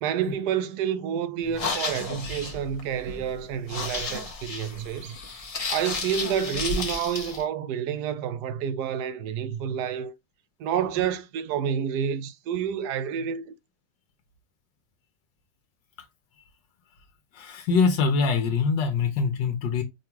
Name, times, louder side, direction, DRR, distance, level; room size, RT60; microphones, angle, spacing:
voice 1, 0.0-5.2 5.7-10.1 10.6-13.5, right 8 dB, 75° right, 1.1 m, -29 dB
sound 1, 1.4-7.4, left 4 dB, 60° left, 0.3 m, -33 dB
voice 2, 17.3-19.8, left 5 dB, 85° left, 1.3 m, -23 dB
5.3 x 2.3 x 2.9 m
omnidirectional pair, 1.9 m